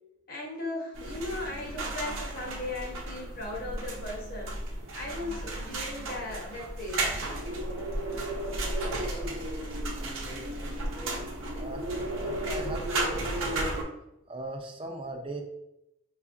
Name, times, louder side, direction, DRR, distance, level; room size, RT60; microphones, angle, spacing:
voice 1, 0.3-4.6 4.9-7.1, left 2 dB, 45° left, -2 dB, 0.9 m, -37 dB
sound 1, 0.9-13.8, right 1 dB, 75° right, 0.7 m, -33 dB
voice 2, 9.0-11.1 11.6-11.8 12.2-13.7 14.3-15.4, right 2 dB, 25° right, 3 dB, 0.4 m, -41 dB
5.1 x 2.4 x 2.5 m, 0.86 s
head